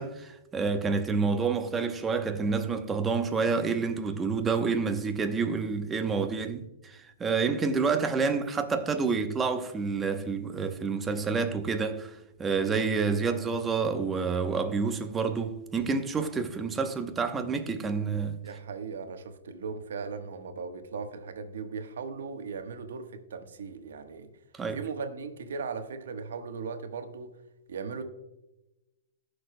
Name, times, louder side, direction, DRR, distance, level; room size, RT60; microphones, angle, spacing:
voice 1, 0.0-18.4 24.5-24.8, right 5 dB, 15° right, 0.9 m, -28 dB
voice 2, 18.4-24.3 24.7-27.3 27.7-28.0, right 5 dB, 80° right, 1.2 m, -38 dB
19.0 x 6.5 x 2.2 m
hypercardioid pair, 145°, 0 cm